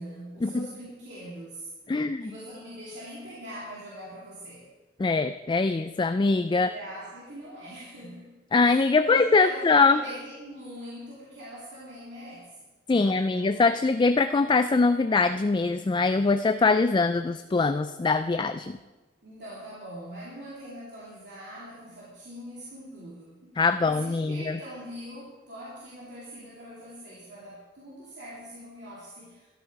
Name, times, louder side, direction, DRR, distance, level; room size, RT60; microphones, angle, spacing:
voice 1, 0.0-1.7 2.2-4.7 6.5-13.8 19.2-29.5, equal, 65° right, -7 dB, 3.0 m, -42 dB
voice 2, 1.9-2.3 5.0-6.7 8.5-10.0 12.9-18.8 23.6-24.6, left 3 dB, 25° left, 10 dB, 0.3 m, -23 dB
12.5 x 12.5 x 4.7 m, 1.2 s
head